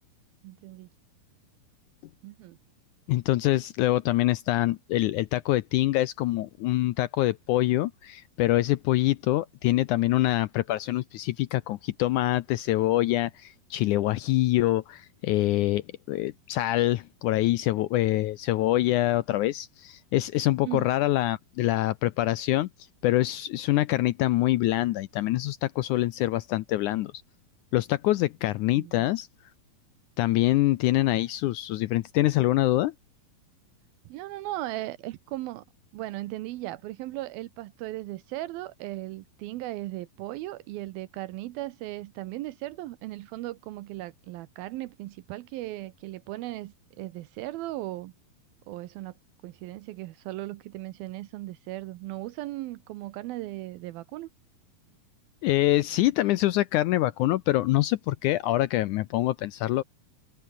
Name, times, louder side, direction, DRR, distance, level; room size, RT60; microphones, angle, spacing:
voice 1, 0.4-0.9 2.2-2.6 20.6-20.9 28.8-29.1 34.1-35.6 35.9-48.1 48.7-49.1 49.4-54.3, right 17 dB, 80° right, 2.6 m, -37 dB
voice 2, 3.1-22.7 23.0-27.1 27.7-29.3 30.2-32.9 55.4-59.8, left 16 dB, 80° left, 1.8 m, -25 dB
omnidirectional pair, 4.2 m